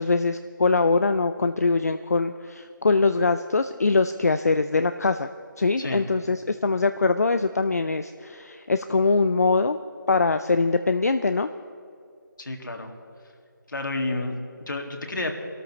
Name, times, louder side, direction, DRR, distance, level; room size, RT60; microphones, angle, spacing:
voice 1, 0.0-5.3 5.6-9.8 10.1-11.5, left 3 dB, 50° left, 10 dB, 0.4 m, -22 dB
voice 2, 12.4-12.9 13.7-15.3, left 2 dB, 65° left, 3 dB, 2.1 m, -30 dB
24.5 x 13.0 x 3.2 m, 2.3 s
figure-of-eight pair, 170°, 11 cm